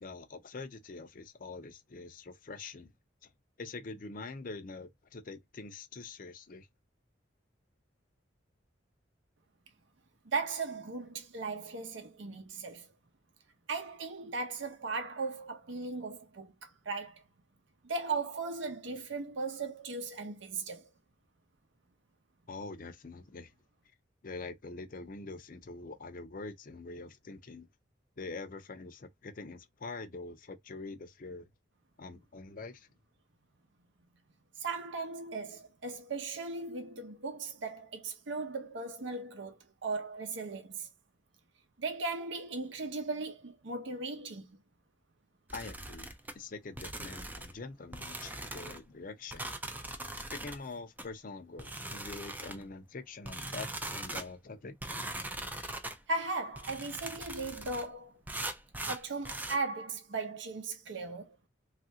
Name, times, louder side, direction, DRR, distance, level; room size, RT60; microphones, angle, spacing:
voice 1, 0.0-2.9 3.6-6.7 22.5-23.5 24.2-27.7 28.2-31.5 32.0-32.9 45.5-46.1 46.3-49.5 50.1-54.7, left 3 dB, 45° left, 0.5 m, -44 dB
voice 2, 10.3-12.9 13.7-17.2 17.8-20.9 34.6-40.9 41.8-44.6 56.1-58.2 58.9-61.4, right 3 dB, 75° right, 0.7 m, -37 dB
sound 1, 45.5-46.3 46.8-47.6 47.9-48.8 49.3-50.6 51.0-51.1 51.6-52.6 53.3-54.3 54.8-56.0 56.6-57.9 58.3-59.6, right 2 dB, 10° right, 0.3 m, -40 dB
3.2 x 2.4 x 2.7 m
head